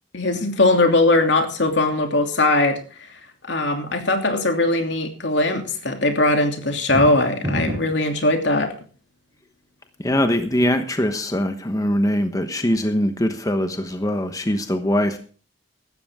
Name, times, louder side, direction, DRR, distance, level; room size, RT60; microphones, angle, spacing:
voice 1, 0.1-2.8 3.4-8.7, left 2 dB, 70° left, 5 dB, 2.9 m, -20 dB
sound 1, 6.7-8.1, equal, 15° right, 6.4 m, -27 dB
voice 2, 10.0-15.2, equal, 20° left, 7 dB, 1.1 m, -22 dB
16.5 x 13.0 x 3.7 m, 0.40 s
head